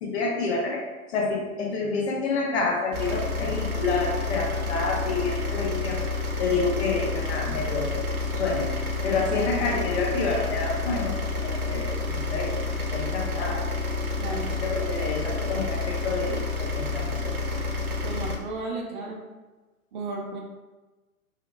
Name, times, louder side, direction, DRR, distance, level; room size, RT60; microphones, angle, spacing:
voice 1, 0.0-6.0 6.4-7.9 8.3-8.7 9.0-12.6 12.9-13.6 14.3-17.4, left 3 dB, 45° left, 0 dB, 0.7 m, -28 dB
sound 1, 2.9-18.4, left 3 dB, 85° right, 0.6 m, -29 dB
voice 2, 14.2-14.7 18.0-19.2 19.9-20.4, right 3 dB, 35° right, 0 dB, 0.4 m, -34 dB
2.8 x 2.0 x 2.6 m, 1.2 s
figure-of-eight pair, 115°, 43 cm